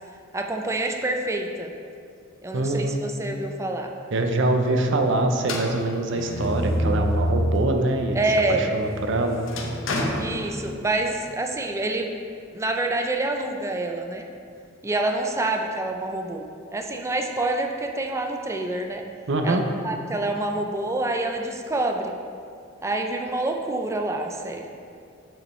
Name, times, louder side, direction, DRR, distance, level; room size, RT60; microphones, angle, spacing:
voice 1, 0.3-1.7 2.4-3.9 8.1-8.7 10.1-12.1 12.5-14.2 14.8-19.0 19.4-19.6 19.8-22.1 22.8-24.7, right 2 dB, 15° right, 3 dB, 0.4 m, -27 dB
voice 2, 2.5-3.0 4.1-8.2 8.5-9.4 19.3-19.6, right 2 dB, 65° right, 5 dB, 0.6 m, -24 dB
sound 1, 5.4-7.8 8.3-11.1, equal, 70° left, 0.7 m, -28 dB
7.0 x 5.3 x 3.2 m, 2.3 s
head